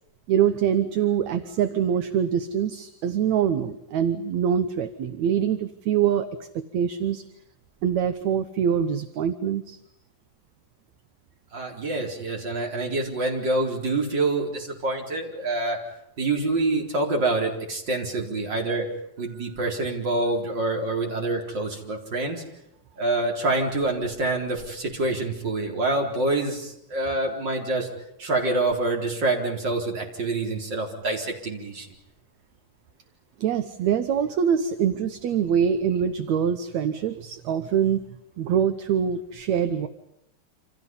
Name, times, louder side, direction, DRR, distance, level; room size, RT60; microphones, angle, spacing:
voice 1, 0.3-7.2 7.8-9.8 33.4-38.0 38.4-39.9, right 8 dB, 70° right, 9 dB, 2.2 m, -24 dB
voice 2, 11.5-15.8 16.2-18.9 19.2-22.4 23.0-27.9 28.2-31.9, right 2 dB, 35° right, 1 dB, 4.8 m, -26 dB
29.0 x 27.0 x 5.5 m, 0.80 s
omnidirectional pair, 3.6 m